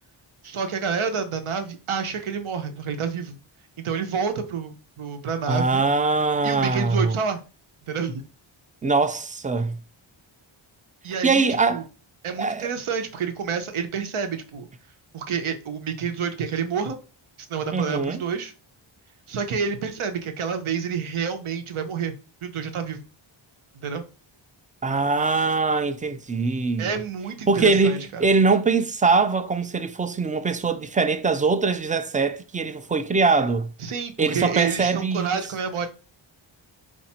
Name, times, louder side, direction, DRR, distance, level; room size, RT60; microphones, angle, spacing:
voice 1, 0.4-3.4 3.8-5.8 6.4-7.4 7.9-8.2 11.0-11.8 12.2-14.7 15.1-17.0 17.5-18.5 19.3-22.2 22.4-23.0 23.8-24.0 26.8-28.2 33.8-35.9, right 6 dB, 85° right, 0.9 m, -28 dB
voice 2, 5.5-7.2 8.8-9.8 11.2-11.8 12.4-12.7 17.7-18.2 24.8-27.0 27.5-33.7 34.2-35.4, right 4 dB, 20° right, 0.3 m, -22 dB
4.8 x 2.6 x 4.2 m
wide cardioid pair, 140°, 48 cm